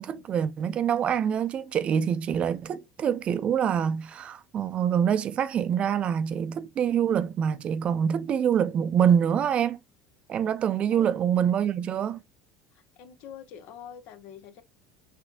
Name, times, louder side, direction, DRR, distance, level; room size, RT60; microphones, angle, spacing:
voice 1, 0.0-9.8 10.3-12.2, right 8 dB, 40° right, 0.5 m, -25 dB
voice 2, 12.7-14.6, left 8 dB, 55° left, 0.7 m, -45 dB
5.9 x 2.7 x 2.4 m
figure-of-eight pair, 70°, 3 cm